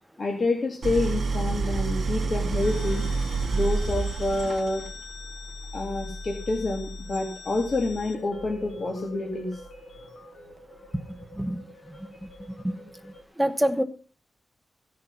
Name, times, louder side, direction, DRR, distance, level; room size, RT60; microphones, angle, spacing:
voice 1, 0.2-3.0 3.5-4.8 5.7-9.6, left 2 dB, 40° left, 1 dB, 1.9 m, -28 dB
Idling, 0.8-5.0, right 4 dB, 65° right, 2.5 m, -28 dB
sound 1, 2.6-13.2, left 2 dB, 70° left, 2.7 m, -42 dB
voice 2, 13.4-13.8, equal, 5° right, 8 dB, 1.1 m, -25 dB
16.0 x 6.7 x 5.5 m, 0.36 s
wide cardioid pair, 165°, 0 cm